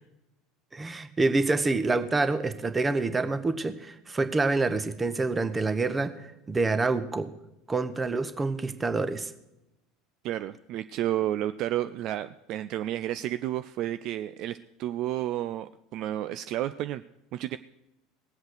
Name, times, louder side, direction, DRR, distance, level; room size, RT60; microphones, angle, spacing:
voice 1, 0.7-7.3 7.7-9.3, right 3 dB, 20° right, 11 dB, 1.1 m, -27 dB
voice 2, 10.2-17.0 17.3-17.6, right 13 dB, 50° right, 12 dB, 0.4 m, -31 dB
18.5 x 8.0 x 6.4 m, 0.91 s
figure-of-eight pair, 70°, 0 cm